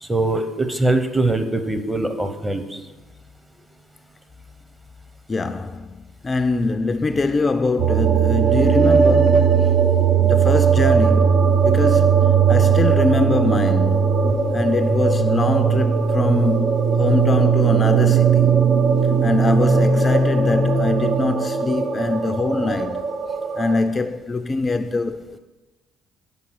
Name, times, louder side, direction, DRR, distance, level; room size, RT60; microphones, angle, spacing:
voice 1, 0.0-2.8, right 2 dB, 15° right, 0.8 m, -22 dB
voice 2, 5.3-9.7 10.2-14.1 14.5-18.6 19.2-23.0 23.6-25.4, left 3 dB, 30° left, 0.4 m, -23 dB
sound 1, 7.8-23.8, right 6 dB, 65° right, 0.7 m, -18 dB
5.6 x 5.1 x 6.4 m
hypercardioid pair, 55°, 0 cm